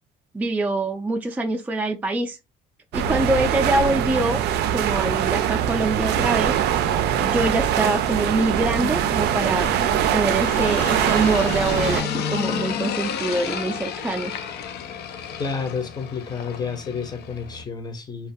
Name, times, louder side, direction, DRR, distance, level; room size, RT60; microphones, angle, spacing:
voice 1, 0.3-2.4 2.9-4.4 4.7-6.5 7.2-14.3, right 2 dB, 10° right, 0.4 m, -24 dB
sound 1, 2.9-12.0, right 10 dB, 75° right, 0.4 m, -22 dB
sound 2, 6.1-17.6, left 7 dB, 80° left, 0.5 m, -32 dB
voice 2, 15.4-18.3, left 5 dB, 25° left, 0.7 m, -30 dB
2.3 x 2.2 x 2.6 m
cardioid pair, 110°, 17 cm